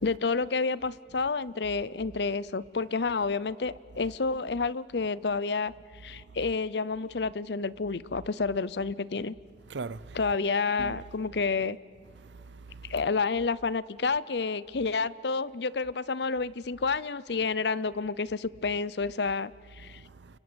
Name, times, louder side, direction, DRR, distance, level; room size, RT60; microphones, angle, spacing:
voice 1, 0.0-5.7 6.0-9.3 10.1-11.8 12.9-20.0, left 4 dB, 70° left, 0.7 m, -29 dB
voice 2, 9.7-10.2 10.8-11.0 12.1-12.9 19.8-20.4, right 4 dB, 90° right, 0.7 m, -42 dB
30.0 x 23.0 x 8.0 m
head